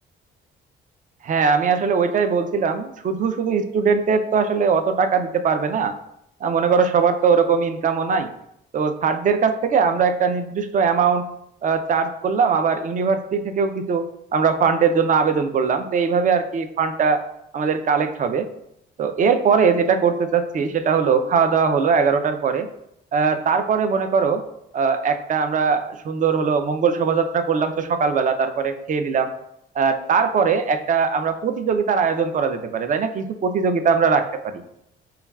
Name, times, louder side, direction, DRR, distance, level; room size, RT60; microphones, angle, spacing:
voice 1, 1.2-5.9 6.4-8.3 8.7-11.3 11.6-14.0 14.3-17.2 17.5-18.5 19.0-22.7 23.1-24.4 24.7-29.3 29.8-34.6, right 5 dB, 40° right, 8 dB, 0.4 m, -20 dB
5.7 x 2.3 x 2.3 m, 0.78 s
cardioid pair, 90°, 20 cm